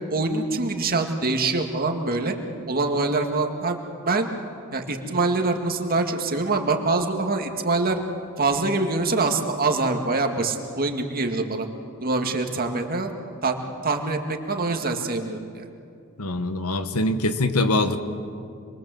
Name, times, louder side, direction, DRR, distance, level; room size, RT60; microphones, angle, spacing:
voice 1, 0.1-2.3 2.7-3.8 4.0-4.3 4.7-8.0 8.4-11.7 12.0-13.1 13.4-13.6 13.8-15.6, right 3 dB, 45° right, 4 dB, 2.1 m, -24 dB
voice 2, 16.2-18.0, left 2 dB, 80° left, 9 dB, 1.6 m, -23 dB
27.0 x 22.5 x 7.9 m, 2.5 s
head